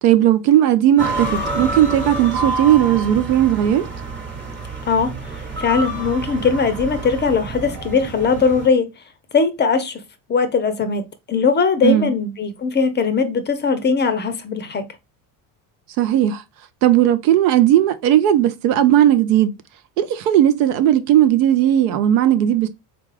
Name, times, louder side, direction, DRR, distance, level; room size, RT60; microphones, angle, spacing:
voice 1, 0.0-3.9 11.8-12.1 16.0-16.4 16.8-19.5 20.0-22.7, right 11 dB, 80° right, 0.6 m, -16 dB
sound 1, 1.0-8.7, right 2 dB, 25° right, 1.1 m, -28 dB
voice 2, 4.9-8.9 9.3-10.0 10.3-14.9, left 5 dB, 25° left, 0.5 m, -20 dB
3.7 x 2.3 x 3.2 m
supercardioid pair, 80°, 45 cm